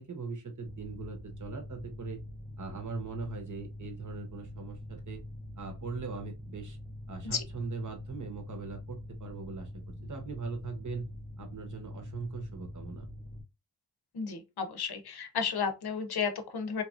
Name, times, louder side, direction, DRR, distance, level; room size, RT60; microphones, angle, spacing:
voice 1, 0.0-2.2 2.6-5.2 5.6-6.8 7.1-11.1 11.4-13.1, right 4 dB, 45° right, 0.9 m, -40 dB
Mechanical fan, 0.6-13.4, left 1 dB, 20° right, 0.6 m, -45 dB
voice 2, 14.1-16.8, left 6 dB, 60° left, 0.8 m, -33 dB
3.0 x 2.5 x 2.4 m
wide cardioid pair, 80°, 42 cm